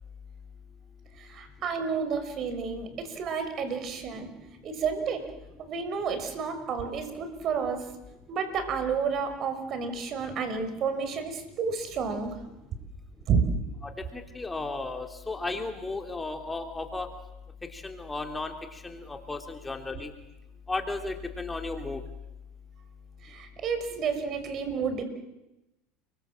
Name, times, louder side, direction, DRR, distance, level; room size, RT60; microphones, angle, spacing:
voice 1, 1.2-4.3 4.6-5.2 5.6-7.9 8.3-12.3 13.3-13.4 23.2-25.1, right 6 dB, 45° right, 8 dB, 5.8 m, -30 dB
voice 2, 13.8-17.1 17.7-20.1 20.7-22.0, left 3 dB, 15° left, 4 dB, 3.2 m, -34 dB
30.0 x 24.0 x 7.7 m, 0.95 s
hypercardioid pair, 95°, 0 cm